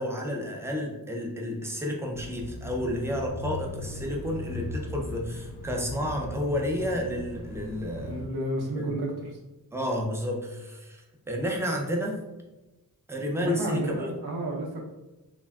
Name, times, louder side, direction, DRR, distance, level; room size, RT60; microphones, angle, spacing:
voice 1, 0.0-8.2 8.8-8.9 9.7-12.2 13.1-14.1, equal, 10° right, 0 dB, 0.3 m, -31 dB
Bicycle / Mechanisms, 2.1-8.3, left 2 dB, 85° left, 0.6 m, -38 dB
voice 2, 8.0-9.4 13.4-14.8, right 1 dB, 90° right, -1 dB, 0.6 m, -31 dB
3.3 x 2.1 x 2.3 m, 1.0 s
wide cardioid pair, 180°, 37 cm